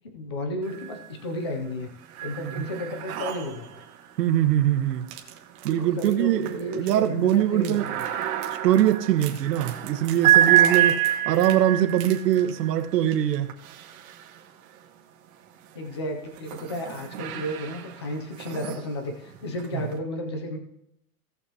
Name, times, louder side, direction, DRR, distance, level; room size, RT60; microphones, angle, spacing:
voice 1, 0.1-1.9 2.2-3.7 5.8-8.0 15.7-20.6, left 1 dB, 20° left, 0.4 m, -33 dB
sound 1, 0.6-1.3 1.6-14.8 15.5-19.9, right 12 dB, 60° right, 1.9 m, -28 dB
voice 2, 4.2-5.0 5.6-7.9 8.6-13.5 19.7-19.8, right 11 dB, 90° right, 1.2 m, -23 dB
sound 2, 5.0-12.8 13.1-13.4 13.7-13.8, right 11 dB, 35° right, 1.2 m, -44 dB
17.5 x 6.9 x 2.8 m
supercardioid pair, 175°, 48 cm